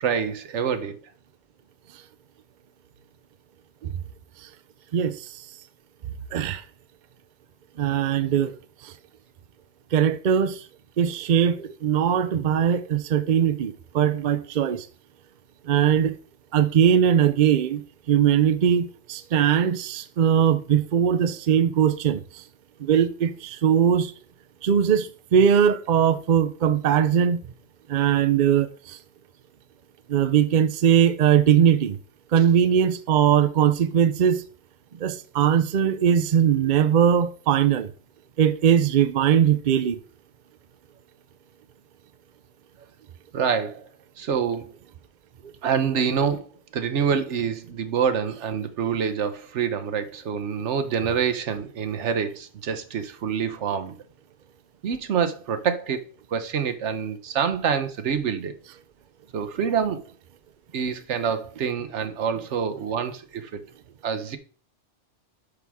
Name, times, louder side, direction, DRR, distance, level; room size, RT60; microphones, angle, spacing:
voice 1, 0.0-1.0 43.3-43.9 44.2-44.7 45.6-46.5 46.7-54.0 54.8-56.0 56.3-58.5 59.3-60.0 60.7-63.6 64.0-64.4, right 7 dB, 75° right, 1.1 m, -26 dB
voice 2, 4.9-5.4 6.3-6.6 7.8-8.5 8.8-8.9 9.9-10.7 11.0-14.9 15.6-16.1 16.5-17.8 18.1-22.4 22.8-24.1 24.6-27.4 27.9-29.0 30.1-32.0 32.3-34.4 35.0-37.9 38.4-40.0, right 8 dB, 50° right, 0.6 m, -20 dB
8.3 x 6.1 x 3.5 m
omnidirectional pair, 1.2 m